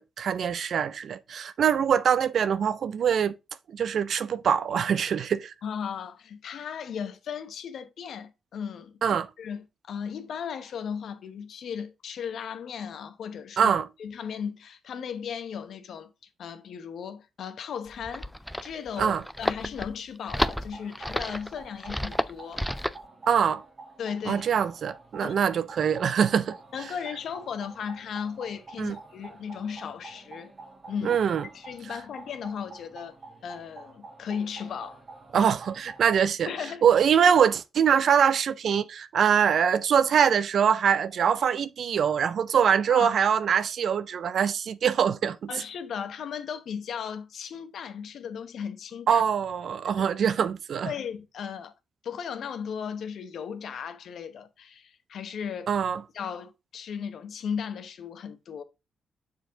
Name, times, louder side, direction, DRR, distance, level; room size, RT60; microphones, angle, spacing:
voice 1, 0.0-3.3 3.7-5.5 9.0-9.3 13.6-13.9 19.0-19.2 23.3-23.6 24.3-26.6 28.8-29.0 31.0-31.4 35.3-36.5 36.8-45.5 49.1-50.9 55.7-56.0, right 7 dB, 60° right, 0.5 m, -23 dB
voice 2, 5.6-9.0 9.4-13.7 14.0-16.1 16.4-18.3 18.6-22.7 24.0-24.4 25.2-25.3 26.7-30.5 30.9-31.2 31.5-33.1 33.4-35.0 35.3-35.5 36.5-36.8 42.9-43.1 45.5-49.2 50.8-51.7 52.0-55.7 56.1-58.6, left 7 dB, 65° left, 0.9 m, -36 dB
sound 1, 17.9-23.0, equal, 5° left, 0.3 m, -31 dB
sound 2, 20.2-36.2, right 3 dB, 30° right, 1.2 m, -48 dB
6.9 x 4.7 x 3.7 m
cardioid pair, 125°, 0 cm